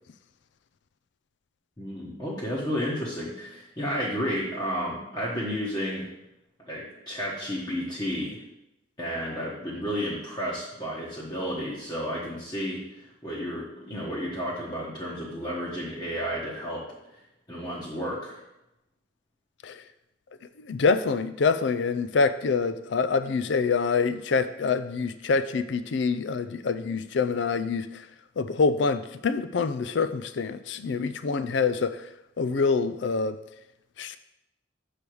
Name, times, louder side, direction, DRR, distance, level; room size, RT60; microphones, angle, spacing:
voice 1, 1.8-6.1 6.6-8.4 9.0-16.8 17.5-18.4, equal, 20° left, -6 dB, 1.1 m, -32 dB
voice 2, 20.7-28.1 28.4-32.1 32.4-33.4 34.0-34.2, left 4 dB, 65° left, 12 dB, 0.4 m, -26 dB
6.9 x 3.4 x 6.1 m, 0.89 s
head